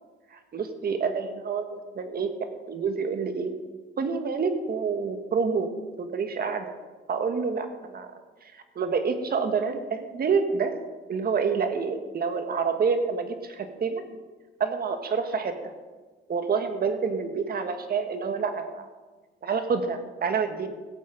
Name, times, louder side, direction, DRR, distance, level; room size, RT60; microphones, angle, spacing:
voice 1, 0.5-2.3 2.6-3.5 4.0-5.7 6.0-6.6 7.1-8.1 8.5-10.7 11.1-14.0 14.6-15.7 16.3-18.9 19.4-20.7, right 5 dB, 50° right, 7 dB, 1.5 m, -28 dB
16.0 x 8.5 x 5.0 m, 1.3 s
cardioid pair, 90°, 20 cm